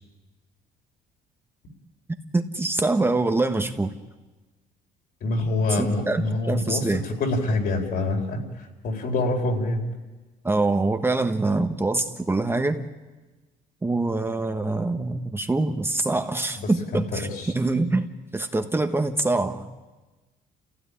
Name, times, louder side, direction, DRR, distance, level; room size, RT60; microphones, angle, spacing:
voice 1, 2.3-3.9 5.8-7.1 10.4-12.9 13.8-18.1 18.3-19.7, right 2 dB, 15° right, 7 dB, 1.3 m, -24 dB
voice 2, 5.2-9.8 16.6-17.5, left 2 dB, 65° left, 3 dB, 4.6 m, -26 dB
29.0 x 16.0 x 10.0 m, 1.2 s
cardioid pair, 110°, 17 cm